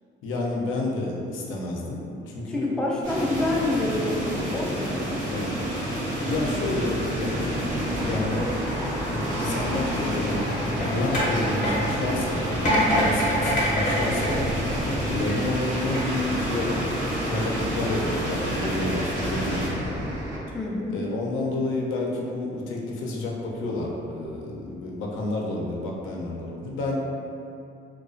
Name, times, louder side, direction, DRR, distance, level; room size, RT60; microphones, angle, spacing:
voice 1, 0.2-2.7 5.3-5.5 6.2-8.4 9.0-14.5 15.1-20.1 20.9-26.9, left 2 dB, 85° left, -2 dB, 0.4 m, -30 dB
voice 2, 2.5-5.6 12.6-13.1 20.5-21.0, left 2 dB, 5° left, -4 dB, 0.3 m, -28 dB
sound 1, 3.0-19.7, equal, 85° right, 1.0 m, -29 dB
sound 2, 6.2-20.4, equal, 70° right, 0.6 m, -34 dB
sound 3, 10.3-15.2 15.8-16.0, equal, 40° left, 0.7 m, -26 dB
2.3 x 2.2 x 2.4 m, 2.6 s
cardioid pair, 90°, 20 cm